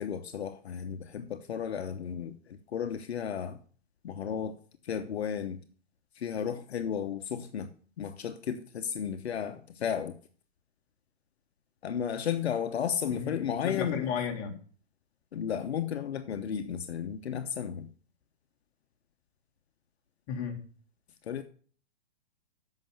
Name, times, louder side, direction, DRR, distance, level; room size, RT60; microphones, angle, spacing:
voice 1, 0.0-3.6 4.0-4.6 4.8-5.6 6.1-7.7 8.0-10.1 11.8-14.1 15.3-17.9 21.2-21.4, left 8 dB, 80° left, 0.9 m, -33 dB
voice 2, 13.1-14.6 20.3-20.6, left 7 dB, 35° left, 2.2 m, -34 dB
7.5 x 5.7 x 7.5 m
hypercardioid pair, 135°, 32 cm